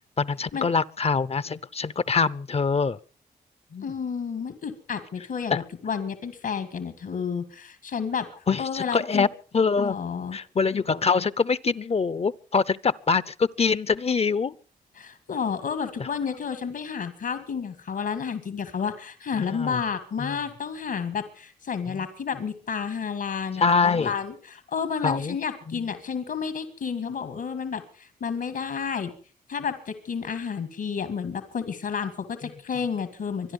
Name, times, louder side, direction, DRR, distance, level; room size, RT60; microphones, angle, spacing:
voice 1, 0.2-3.0 3.7-3.9 5.5-5.6 8.5-9.3 9.5-10.0 10.3-14.5 16.0-16.1 19.4-19.8 20.2-20.4 21.9-22.1 23.6-24.1 25.0-25.4 25.7-25.9, left 5 dB, 40° left, 0.7 m, -24 dB
voice 2, 3.8-8.3 8.6-9.3 9.8-10.4 15.0-29.1 29.5-33.5, left 6 dB, 75° left, 2.0 m, -31 dB
25.0 x 10.5 x 5.4 m
cardioid pair, 60°, 16 cm